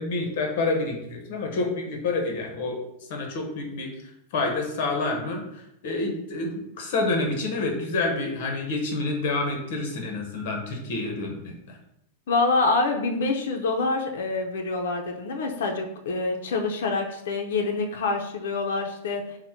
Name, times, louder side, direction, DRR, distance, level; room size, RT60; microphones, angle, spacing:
voice 1, 0.0-2.8 3.1-3.9 4.3-5.4 5.8-11.8, left 3 dB, 55° left, 3 dB, 1.0 m, -28 dB
voice 2, 12.3-19.4, left 3 dB, 75° left, 2 dB, 0.5 m, -26 dB
4.1 x 2.1 x 4.3 m, 0.80 s
supercardioid pair, 165°, 0 cm